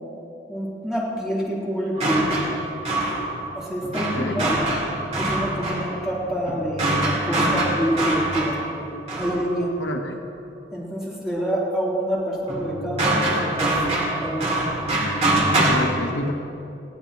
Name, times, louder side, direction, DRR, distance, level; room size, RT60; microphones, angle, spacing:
voice 1, 0.5-2.5 3.5-4.6 5.2-8.6 9.2-9.7 10.7-14.5, equal, 5° right, -7 dB, 3.7 m, -27 dB
sound 1, 2.0-9.7 12.5-15.8, right 1 dB, 35° right, 2.7 m, -24 dB
voice 2, 4.0-4.4 9.8-10.2 15.5-16.3, left 1 dB, 80° left, 3 dB, 1.2 m, -29 dB
21.0 x 15.0 x 3.2 m, 2.8 s
head